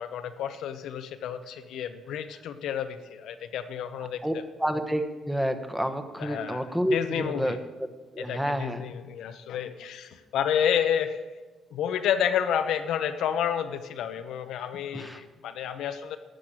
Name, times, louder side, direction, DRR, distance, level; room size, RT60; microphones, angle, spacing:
voice 1, 0.0-4.4 6.2-7.6 8.2-11.2 11.7-16.2, left 9 dB, 80° left, 9 dB, 0.8 m, -30 dB
voice 2, 4.6-7.6 8.1-8.8 14.9-15.2, equal, 5° right, 8 dB, 1.2 m, -29 dB
12.5 x 6.5 x 8.8 m, 1.3 s
cardioid pair, 90°, 0 cm